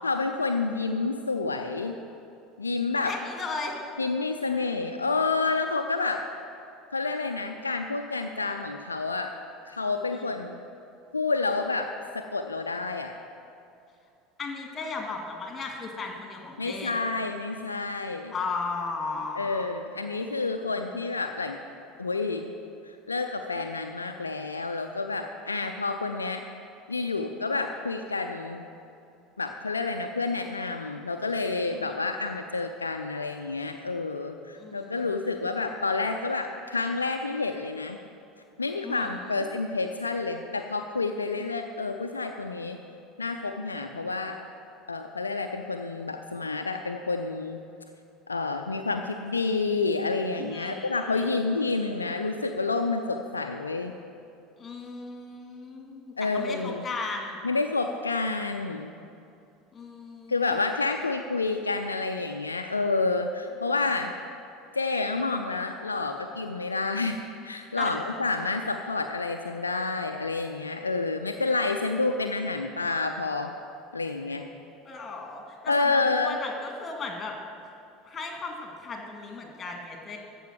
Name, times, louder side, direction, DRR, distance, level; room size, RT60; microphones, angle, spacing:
voice 1, 0.0-2.0 2.6-3.1 4.0-6.2 6.9-9.3 9.7-10.6 11.1-13.1 16.6-18.3 19.4-21.6 22.0-22.5 22.9-26.4 26.9-28.7 29.4-38.0 38.6-42.8 43.2-44.4 44.9-47.6 48.3-53.9 56.2-56.9 57.4-58.9 60.3-64.1 64.7-67.2 67.4-73.5 73.9-74.5 75.7-76.4, left 3 dB, 85° left, 5 dB, 0.5 m, -29 dB
voice 2, 3.0-3.8 10.1-10.3 14.4-17.0 18.3-19.7 31.7-31.9 34.6-35.1 38.8-39.1 50.4-51.4 54.6-57.4 59.7-60.6 67.7-68.0 71.7-71.8 74.8-77.4 78.0-80.2, left 4 dB, 25° left, 2 dB, 2.2 m, -36 dB
14.0 x 5.4 x 7.6 m, 2.6 s
figure-of-eight pair, 70°, 0 cm